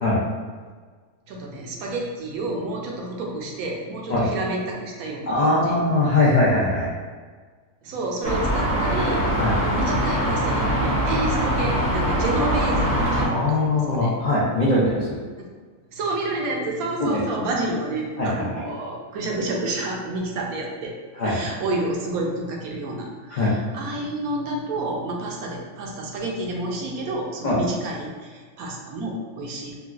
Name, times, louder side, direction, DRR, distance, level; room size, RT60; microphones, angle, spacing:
voice 1, 1.3-5.8 7.8-14.1 15.9-20.9 21.2-29.8, right 2 dB, 75° right, -1 dB, 1.0 m, -30 dB
voice 2, 5.3-6.9 9.4-9.5 13.3-15.2 17.0-17.2 18.2-18.5 21.2-21.4 23.3-23.5 27.4-27.6, left 2 dB, 65° left, -8 dB, 0.4 m, -21 dB
sound 1, 8.2-13.3, right 1 dB, 40° right, 0.7 m, -22 dB
3.8 x 2.3 x 2.4 m, 1.5 s
omnidirectional pair, 1.6 m